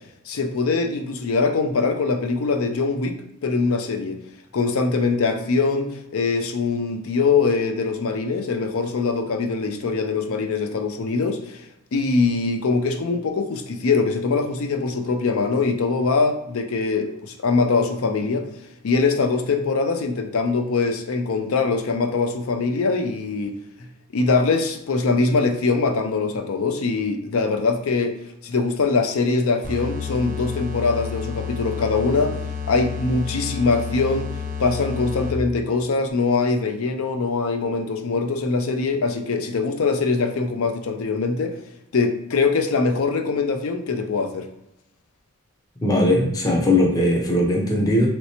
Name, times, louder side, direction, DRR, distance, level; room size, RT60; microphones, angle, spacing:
voice 1, 0.3-3.2 3.4-4.2 4.5-18.5 18.8-23.5 24.1-28.2 28.4-32.4 32.7-34.3 34.6-41.5 41.9-44.5, left 4 dB, 70° left, 5 dB, 0.5 m, -22 dB
sound 1, 29.6-35.6, left 6 dB, 35° right, 0.5 m, -30 dB
voice 2, 45.8-48.1, left 1 dB, 15° left, -1 dB, 0.6 m, -19 dB
3.1 x 2.9 x 2.8 m, 0.83 s
head